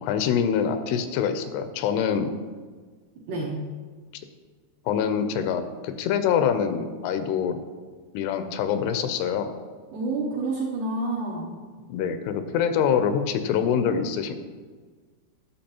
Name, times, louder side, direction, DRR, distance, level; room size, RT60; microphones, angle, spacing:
voice 1, 0.0-2.3 4.9-7.6 8.1-9.5 11.9-14.4, left 7 dB, 85° left, 9 dB, 2.6 m, -25 dB
voice 2, 3.3-3.6 9.9-11.5, right 2 dB, 75° right, -3 dB, 2.0 m, -28 dB
10.5 x 7.1 x 2.9 m, 1.5 s
omnidirectional pair, 4.6 m